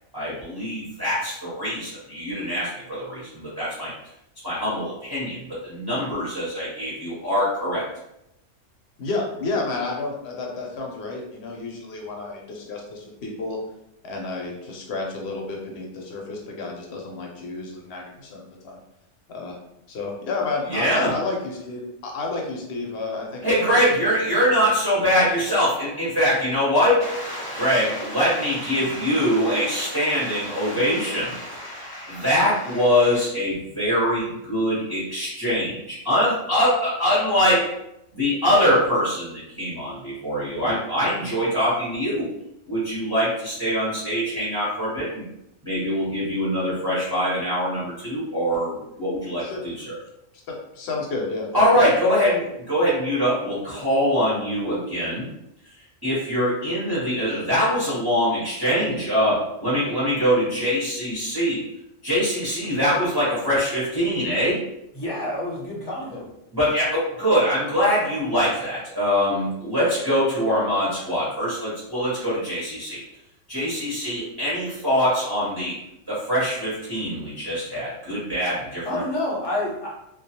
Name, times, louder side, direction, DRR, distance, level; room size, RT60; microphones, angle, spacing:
voice 1, 0.1-3.9 4.4-7.8 20.7-21.1 23.4-37.7 38.1-42.3 42.7-45.3 45.6-50.0 51.5-55.3 56.0-61.6 62.0-64.6 66.5-73.0 73.5-75.8 76.1-79.0, equal, 25° right, -9 dB, 0.7 m, -23 dB
voice 2, 9.0-13.6 14.0-18.8 19.3-19.6 19.9-24.0 24.4-24.5 49.4-49.6 50.5-51.6, left 3 dB, 65° left, 0 dB, 0.8 m, -31 dB
voice 3, 64.9-66.3 78.8-79.9, left 1 dB, 25° left, -5 dB, 0.6 m, -28 dB
2.3 x 2.2 x 2.7 m, 0.83 s
omnidirectional pair, 1.3 m